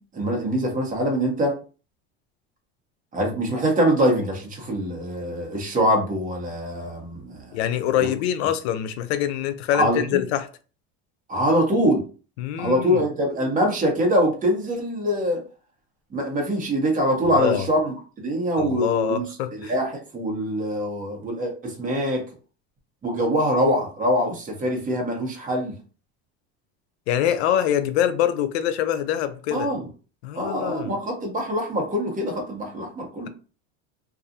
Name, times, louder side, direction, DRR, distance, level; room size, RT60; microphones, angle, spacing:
voice 1, 0.1-1.5 3.1-7.5 8.0-8.1 9.7-10.2 11.3-12.0 12.6-15.4 16.1-19.2 19.5-22.2 23.0-25.7 29.5-29.8 30.3-33.3, equal, 25° right, 1.0 m, -24 dB
voice 2, 7.5-10.5 12.4-13.1 17.3-17.7 18.6-19.7 27.1-29.7 30.2-30.9, left 10 dB, 85° left, 0.5 m, -24 dB
2.6 x 2.3 x 2.6 m
supercardioid pair, 120°, 32 cm